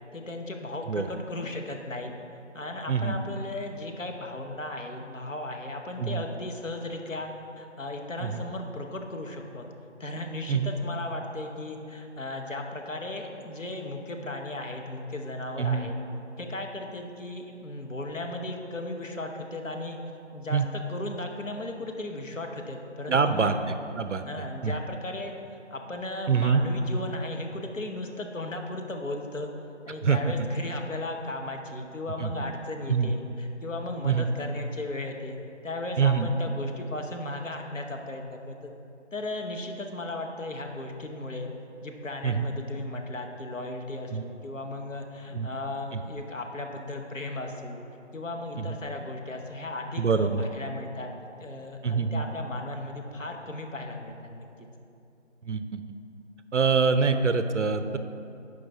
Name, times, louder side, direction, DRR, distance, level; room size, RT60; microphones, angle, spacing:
voice 1, 0.1-2.1 2.5-7.3 7.6-9.7 10.0-16.0 16.4-20.0 20.3-23.5 24.2-25.3 25.7-29.5 29.9-35.4 35.6-38.7 39.1-41.5 41.8-47.8 48.1-51.1 51.4-54.5, left 2 dB, 85° left, 3 dB, 1.0 m, -36 dB
voice 2, 15.6-15.9 20.5-20.7 23.1-23.5 23.9-24.7 26.3-26.6 30.0-30.3 32.2-32.3 32.9-33.1 34.0-34.3 36.0-36.3 42.2-42.5 44.1-44.2 45.3-45.5 48.6-48.8 50.0-50.4 51.8-52.2 55.5-55.8 56.5-58.0, right 6 dB, 70° right, 10 dB, 0.5 m, -25 dB
11.0 x 4.9 x 3.5 m, 2.7 s
figure-of-eight pair, 170°, 37 cm